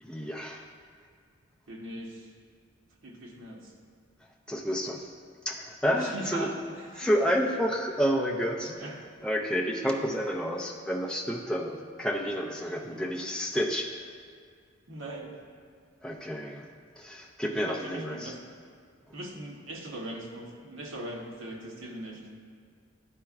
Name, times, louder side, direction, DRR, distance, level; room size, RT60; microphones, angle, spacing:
voice 1, 0.0-0.7 4.5-5.1 5.5-6.5 7.0-8.7 9.2-13.9 16.0-16.7 17.0-18.3, equal, 5° left, -1 dB, 0.5 m, -30 dB
voice 2, 1.7-2.3 3.0-3.7 5.9-6.5 6.9-7.1 8.6-9.1 9.8-10.2 12.9-13.0 14.9-15.4 17.5-18.4 19.1-22.3, right 1 dB, 80° right, 0 dB, 0.9 m, -40 dB
11.5 x 4.3 x 2.4 m, 2.1 s
head